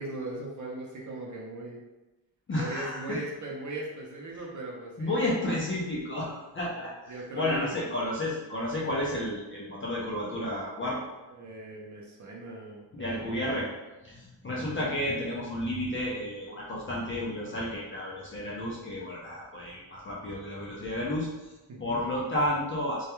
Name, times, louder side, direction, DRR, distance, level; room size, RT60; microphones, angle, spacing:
voice 1, 0.0-1.8 2.5-5.7 7.1-7.8 11.3-13.4 21.7-22.0, right 2 dB, 45° right, -3 dB, 0.6 m, -39 dB
voice 2, 2.5-3.2 5.0-11.0 12.9-13.7 14.0-21.5 21.8-23.1, left 1 dB, 30° left, -5 dB, 0.4 m, -32 dB
2.3 x 2.2 x 2.9 m, 1.1 s
wide cardioid pair, 155°, 44 cm